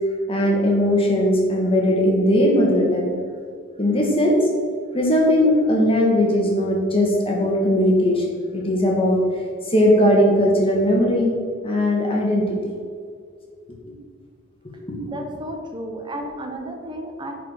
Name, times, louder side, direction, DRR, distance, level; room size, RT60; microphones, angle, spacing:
voice 1, 0.3-3.1 3.8-4.4 4.9-8.3 8.5-9.2 9.6-11.3 11.6-12.8 14.9-15.1, left 1 dB, 30° left, -2 dB, 2.0 m, -19 dB
voice 2, 15.1-17.3, right 1 dB, 25° right, 2 dB, 1.1 m, -32 dB
10.5 x 5.0 x 5.8 m, 2.1 s
head